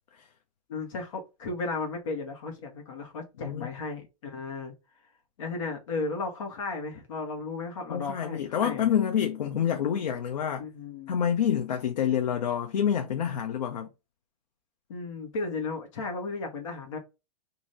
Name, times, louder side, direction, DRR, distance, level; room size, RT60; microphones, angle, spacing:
voice 1, 0.7-4.7 5.4-8.9 10.6-11.2 14.9-17.0, left 3 dB, 50° left, 1.3 m, -35 dB
voice 2, 7.9-10.7 11.1-13.9, left 9 dB, 85° left, 0.7 m, -27 dB
2.7 x 2.7 x 3.2 m
hypercardioid pair, 170°, 21 cm